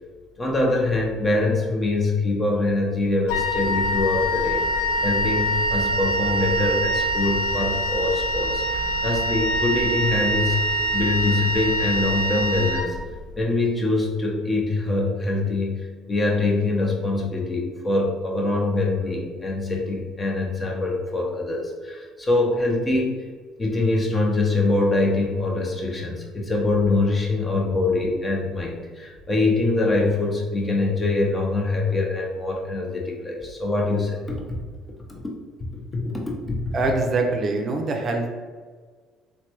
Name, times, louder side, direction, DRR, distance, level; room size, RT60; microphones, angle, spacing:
voice 1, 0.4-4.6 5.0-10.6 10.9-13.0 13.4-23.2 23.6-34.2 35.1-35.2 35.9-36.6, left 2 dB, 25° left, -1 dB, 0.7 m, -24 dB
Wind instrument woodwind instrument, 3.3-13.4, right 1 dB, 90° left, 0.3 m, -24 dB
voice 2, 36.7-38.3, right 3 dB, 45° right, 2 dB, 0.5 m, -24 dB
3.2 x 2.1 x 2.9 m, 1.5 s
supercardioid pair, 90°, 0 cm